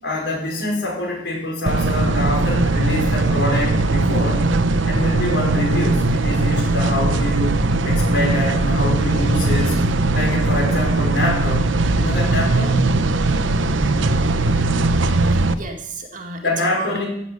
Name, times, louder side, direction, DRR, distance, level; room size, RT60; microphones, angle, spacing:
voice 1, 0.0-4.5 4.9-7.6 7.8-9.8 10.1-11.7 12.0-12.7 16.4-17.1, left 1 dB, 60° left, -1 dB, 5.6 m, -25 dB
sound 1, 1.7-15.5, right 2 dB, 80° right, 0.9 m, -19 dB
voice 2, 15.2-17.0, right 3 dB, 40° right, 3 dB, 2.1 m, -32 dB
15.5 x 7.5 x 8.3 m, 0.75 s
head